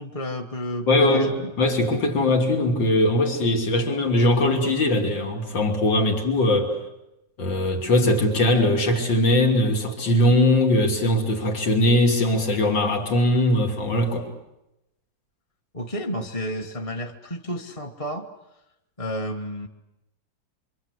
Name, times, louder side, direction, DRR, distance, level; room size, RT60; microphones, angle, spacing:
voice 1, 0.0-1.5 15.7-18.3 19.0-19.7, equal, 20° left, 1.3 m, -31 dB
voice 2, 0.9-6.8 7.4-14.3, left 1 dB, 70° left, 3.7 m, -20 dB
27.5 x 25.0 x 8.2 m
omnidirectional pair, 2.1 m